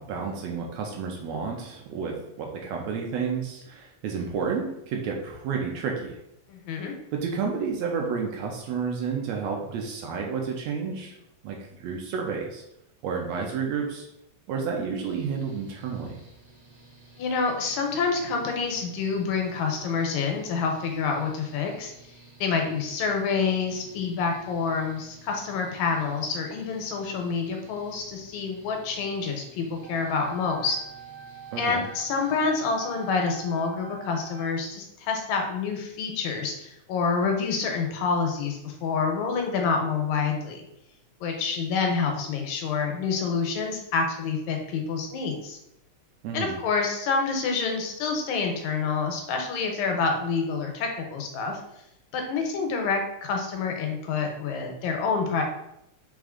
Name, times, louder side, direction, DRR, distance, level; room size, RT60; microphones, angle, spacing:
voice 1, 0.0-6.2 7.1-11.2 11.4-12.6 13.0-14.1 14.5-16.2 31.5-31.8 46.2-46.5, right 5 dB, 80° right, 0 dB, 1.6 m, -31 dB
voice 2, 6.5-7.0 17.2-21.9 22.4-30.8 31.6-40.6 41.2-45.6 46.3-51.6 52.1-55.4, left 5 dB, 85° left, 3 dB, 2.0 m, -27 dB
Mechanical fan, 15.0-33.4, right 2 dB, 45° right, 1.7 m, -54 dB
sound 1, 29.8-34.8, right 6 dB, 30° right, 1.5 m, -44 dB
4.9 x 3.6 x 2.4 m, 0.81 s
omnidirectional pair, 3.3 m